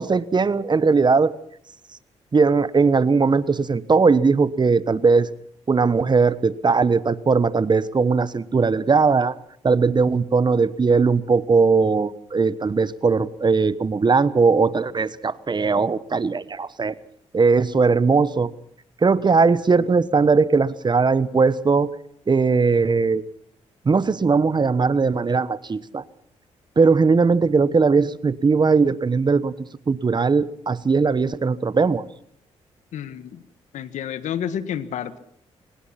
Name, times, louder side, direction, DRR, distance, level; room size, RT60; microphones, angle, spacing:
voice 1, 0.0-1.3 2.3-5.3 5.7-9.4 9.6-16.9 17.3-18.5 19.0-21.9 22.3-23.2 23.8-26.0 26.8-29.5 29.9-32.0, right 4 dB, 35° right, 17 dB, 1.2 m, -19 dB
voice 2, 32.9-33.4 33.7-35.2, left 9 dB, 80° left, 13 dB, 1.7 m, -30 dB
23.5 x 20.0 x 5.9 m, 0.67 s
supercardioid pair, 60°, 12 cm